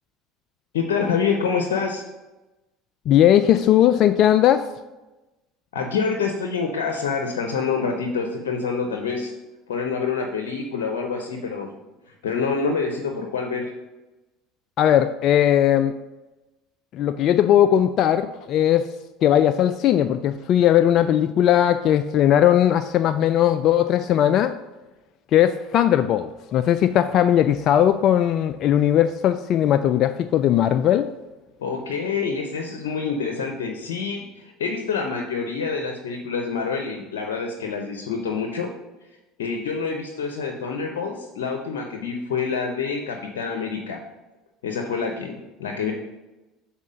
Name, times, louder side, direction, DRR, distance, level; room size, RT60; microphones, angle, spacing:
voice 1, 0.7-2.0 5.7-9.3 9.7-11.7 12.2-13.7 31.6-38.7 39.4-44.0 44.6-45.9, left 5 dB, 85° left, 3 dB, 0.7 m, -27 dB
voice 2, 3.1-4.7 14.8-15.9 16.9-18.9 19.2-24.6 25.3-31.1, left 11 dB, 55° left, 11 dB, 0.3 m, -18 dB
7.3 x 4.3 x 5.1 m, 1.1 s
hypercardioid pair, 80°, 0 cm